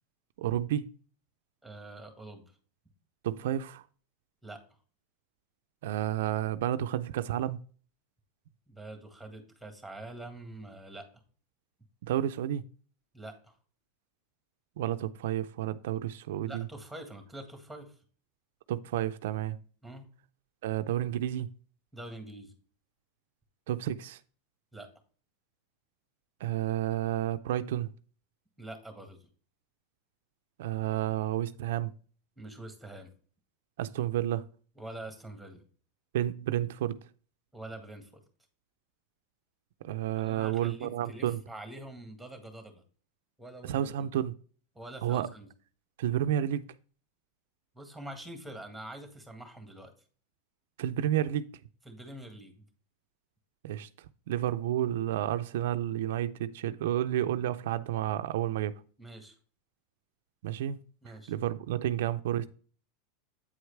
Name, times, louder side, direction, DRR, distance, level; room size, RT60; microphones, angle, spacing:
voice 1, 0.4-0.9 3.2-3.9 5.8-7.6 12.0-12.6 14.8-16.7 18.7-19.6 20.6-21.5 23.7-24.2 26.4-27.9 30.6-31.9 33.8-34.5 36.1-37.1 39.8-41.4 43.6-44.3 45.0-45.3 46.0-46.7 50.8-51.5 53.6-53.9 54.3-58.8 60.4-60.8 61.1-62.5, right 12 dB, 80° right, 0.4 m, -31 dB
voice 2, 1.6-2.5 4.4-4.6 8.7-11.1 13.1-13.6 16.4-18.0 19.8-20.1 21.9-22.5 24.7-24.9 28.6-29.3 32.4-33.1 34.8-35.6 37.5-38.2 40.2-42.8 43.4-43.9 44.8-45.5 47.8-49.9 51.9-52.6 59.0-59.4 61.0-61.3, right 1 dB, ahead, 1.8 m, -45 dB
8.5 x 4.7 x 3.3 m
supercardioid pair, 120°, 0 cm